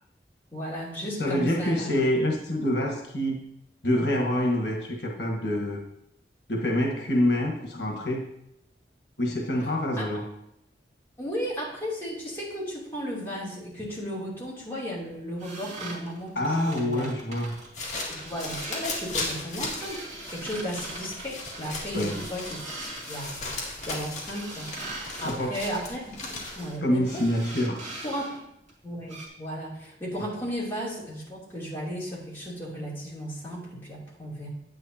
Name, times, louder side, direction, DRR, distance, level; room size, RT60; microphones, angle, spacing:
voice 1, 0.5-1.9 9.6-9.7 9.9-10.1 11.2-17.4 18.2-22.7 23.1-27.3 28.0-28.4 28.8-34.5, equal, 15° left, -7 dB, 2.8 m, -35 dB
voice 2, 1.2-3.4 3.8-5.8 6.5-8.3 9.2-10.2 16.3-17.6 21.9-22.2 25.2-25.6 26.8-27.8, left 1 dB, 80° left, 1 dB, 1.3 m, -26 dB
sound 1, 15.4-17.7 18.1-19.1 19.4-23.7 24.3-25.3 26.4-26.8 27.0-28.4 28.7-28.8 29.1-29.3, right 2 dB, 40° right, 2.3 m, -41 dB
sound 2, 17.5-26.8, left 2 dB, 45° left, 2.0 m, -37 dB
9.5 x 9.1 x 2.8 m, 0.80 s
head